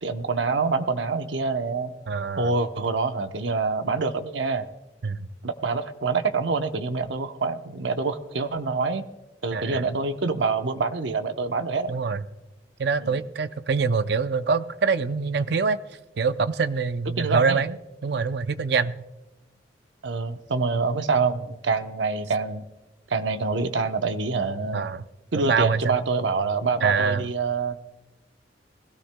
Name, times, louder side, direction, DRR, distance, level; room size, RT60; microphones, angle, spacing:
voice 1, 0.0-1.9 2.4-4.7 5.4-9.1 9.4-11.9 13.0-13.2 17.2-17.6 20.0-22.6 23.1-24.8 25.3-27.8, right 4 dB, 85° right, 8 dB, 0.8 m, -26 dB
voice 2, 2.1-2.5 5.0-5.3 9.5-9.9 11.9-12.2 12.8-15.8 16.2-17.8 18.0-19.0 24.7-25.0 25.3-26.0 26.8-27.2, right 5 dB, 65° right, 13 dB, 0.5 m, -25 dB
21.0 x 16.5 x 2.2 m, 1.1 s
head